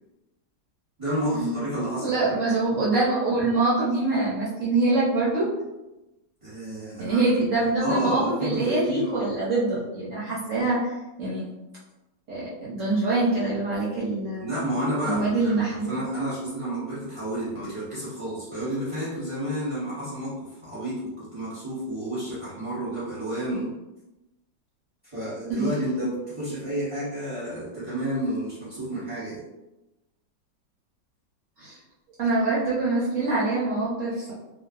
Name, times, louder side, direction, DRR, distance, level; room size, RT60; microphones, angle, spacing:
voice 1, 1.0-2.3 6.4-7.3 7.8-9.3 14.4-23.7 25.1-29.4, right 1 dB, 25° right, -11 dB, 0.7 m, -30 dB
voice 2, 2.0-5.5 7.0-11.4 12.3-14.5 15.0-15.9 23.5-23.6 25.5-25.7 31.6-31.8 32.2-34.3, right 2 dB, 60° right, -7 dB, 0.8 m, -25 dB
3.1 x 2.1 x 2.3 m, 0.99 s
omnidirectional pair, 2.0 m